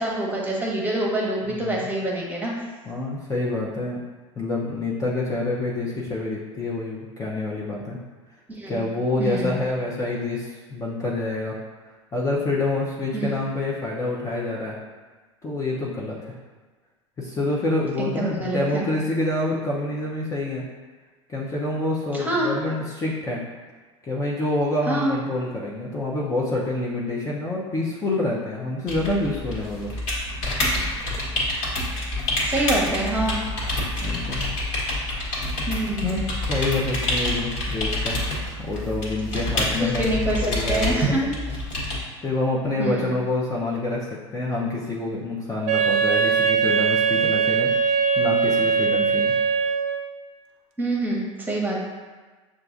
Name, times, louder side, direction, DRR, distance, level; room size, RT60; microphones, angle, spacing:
voice 1, 0.0-2.5 8.5-8.8 9.2-9.6 13.1-13.3 18.0-18.9 22.1-22.6 24.9-25.1 32.4-33.4 35.7-36.2 39.8-40.4 40.7-41.2 42.8-43.1 50.8-51.8, right 2 dB, 10° right, -3 dB, 1.0 m, -25 dB
voice 2, 1.5-1.8 2.9-4.0 4.4-8.0 8.7-11.6 12.1-14.8 15.4-16.3 17.2-20.6 21.3-23.4 24.0-29.9 34.0-34.4 36.0-38.2 38.6-40.2 40.5-41.1 42.2-49.3, left 2 dB, 20° left, -5 dB, 0.7 m, -27 dB
sound 1, 28.9-42.0, left 1 dB, 55° left, 1.5 m, -27 dB
Wind instrument woodwind instrument, 45.7-50.1, right 6 dB, 45° right, 0.5 m, -21 dB
6.5 x 2.4 x 2.5 m, 1.3 s
hypercardioid pair, 85°, 16 cm